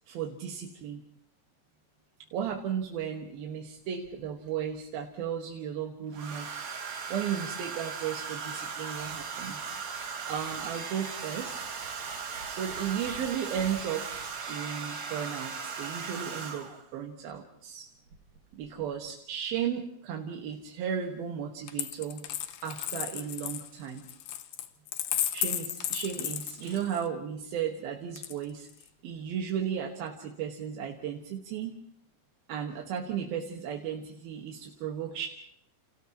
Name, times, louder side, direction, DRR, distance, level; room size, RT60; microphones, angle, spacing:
voice 1, 0.1-1.0 2.3-6.6 7.1-9.7 10.3-12.0 12.5-14.1 14.5-17.9 18.5-22.2 22.6-24.0 25.3-28.7 29.0-31.7 32.5-35.3, right 8 dB, 80° right, 1 dB, 3.4 m, -35 dB
Domestic sounds home sounds, 4.0-4.7 6.1-16.9 18.1-18.4 18.6-19.0, right 5 dB, 50° right, 3.1 m, -38 dB
Coin (dropping), 21.7-27.1 28.2-28.9, left 12 dB, 85° left, 2.9 m, -34 dB
30.0 x 30.0 x 3.0 m, 0.71 s
omnidirectional pair, 4.2 m